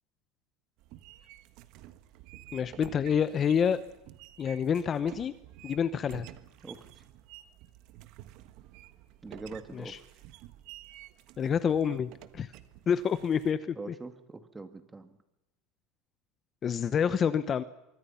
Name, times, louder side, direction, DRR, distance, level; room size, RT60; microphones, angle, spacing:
sound 1, 0.8-13.5, right 14 dB, 60° right, 1.5 m, -51 dB
voice 1, 2.5-3.8 4.4-5.3 5.6-6.3 9.7-10.0 11.4-12.5 12.9-13.9 16.6-17.6, left 7 dB, 30° left, 13 dB, 1.0 m, -28 dB
voice 2, 6.6-7.0 9.2-9.9 13.8-15.2, right 3 dB, 15° right, 8 dB, 2.2 m, -43 dB
25.0 x 23.0 x 5.8 m, 0.92 s
supercardioid pair, 120°, 0 cm